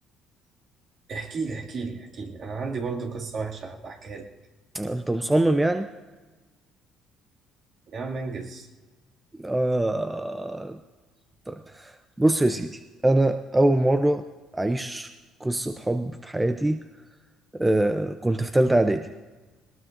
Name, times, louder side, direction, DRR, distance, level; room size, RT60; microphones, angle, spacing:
voice 1, 1.1-4.3 7.9-8.7, right 4 dB, 50° right, 0 dB, 2.3 m, -33 dB
voice 2, 4.7-5.9 9.4-10.8 11.5-11.9 12.2-14.2 14.5-15.1 15.4-16.8 17.5-19.1, right 1 dB, 10° right, 8 dB, 0.6 m, -23 dB
20.5 x 18.0 x 2.6 m, 1.3 s
supercardioid pair, 90°, 0 cm